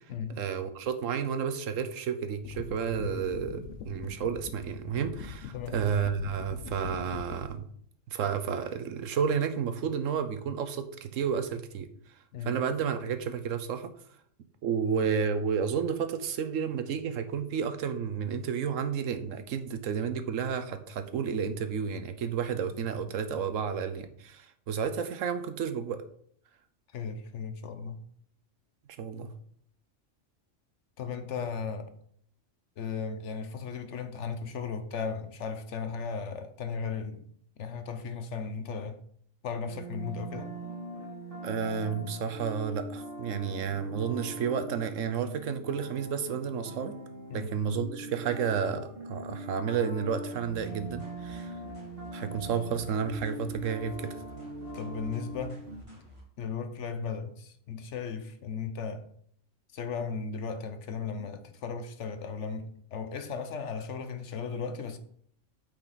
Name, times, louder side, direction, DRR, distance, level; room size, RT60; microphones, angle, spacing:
voice 1, 0.4-7.7 8.1-11.9 12.4-13.9 14.6-26.0 29.0-29.3 41.4-47.0 47.3-51.5 52.1-54.1, right 7 dB, 80° right, 1.1 m, -31 dB
sound 1, 2.4-7.6, left 8 dB, 90° left, 1.0 m, -43 dB
voice 2, 26.9-28.0 31.0-31.9 32.8-37.2 37.6-39.0 39.4-40.5 47.3-47.5 54.7-55.6 56.4-59.1 59.7-65.0, left 5 dB, 65° left, 1.1 m, -36 dB
sound 2, 39.7-55.8, right 1 dB, 45° right, 1.8 m, -42 dB
sound 3, 50.2-56.2, equal, 25° right, 2.4 m, -52 dB
8.8 x 5.1 x 4.0 m
omnidirectional pair, 1.3 m